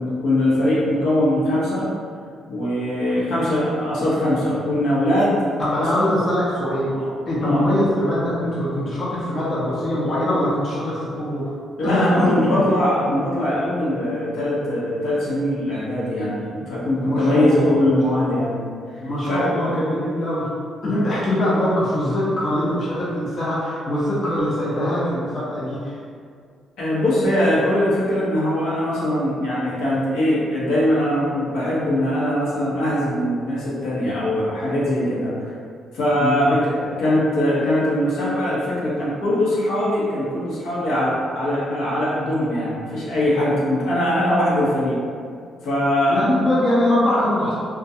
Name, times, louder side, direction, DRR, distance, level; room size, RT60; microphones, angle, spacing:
voice 1, 0.0-1.9 2.5-5.4 5.8-6.0 6.9-7.1 7.4-7.6 11.8-18.7 19.3-19.6 26.8-35.5 35.9-45.0 45.6-46.3, left 1 dB, 85° left, -8 dB, 0.8 m, -21 dB
voice 2, 5.6-6.9 7.3-11.5 11.8-12.6 17.0-17.8 18.1-18.3 19.0-20.5 20.8-26.0 36.2-36.5 46.1-47.5, left 1 dB, 45° left, -8 dB, 0.6 m, -22 dB
2.3 x 2.2 x 2.7 m, 2.2 s
cardioid pair, 90°, 0 cm